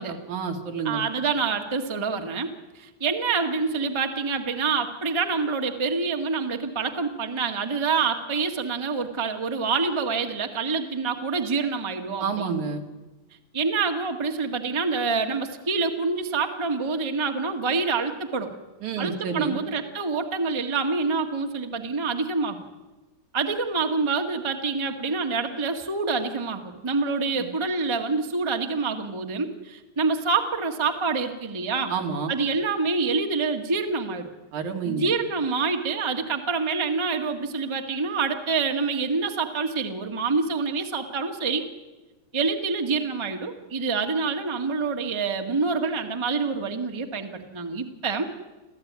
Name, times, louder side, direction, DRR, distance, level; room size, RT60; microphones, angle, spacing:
voice 1, 0.0-1.0 12.2-12.8 18.8-19.6 31.9-32.3 34.5-35.1, right 6 dB, 80° right, 3 dB, 3.6 m, -29 dB
voice 2, 0.8-12.6 13.5-18.5 19.0-22.6 23.3-31.9 32.3-34.3 34.8-41.7 42.3-48.3, right 4 dB, 15° right, 4 dB, 1.0 m, -26 dB
27.0 x 15.0 x 9.5 m, 1.1 s
omnidirectional pair, 3.4 m